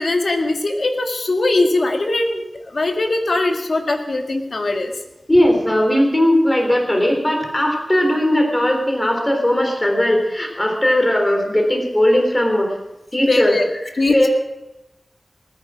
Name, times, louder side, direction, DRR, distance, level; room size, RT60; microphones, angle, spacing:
voice 1, 0.0-4.9 13.3-13.7 14.0-14.3, left 2 dB, 75° left, 4 dB, 2.0 m, -20 dB
voice 2, 5.3-12.7 13.1-13.6 13.8-14.3, left 1 dB, 25° left, 3 dB, 3.6 m, -18 dB
20.0 x 9.9 x 6.2 m, 1.0 s
wide cardioid pair, 50°, 0 cm